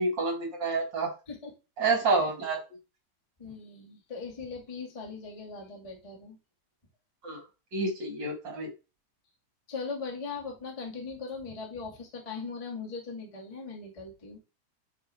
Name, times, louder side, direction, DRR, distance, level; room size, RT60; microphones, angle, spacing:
voice 1, 0.0-1.1 1.8-2.6 7.2-7.4 7.7-8.7, right 3 dB, 40° right, 1 dB, 1.7 m, -28 dB
voice 2, 3.4-6.4 9.7-14.4, left 4 dB, 45° left, -1 dB, 0.4 m, -39 dB
9.0 x 4.7 x 3.5 m, 0.29 s
omnidirectional pair, 4.9 m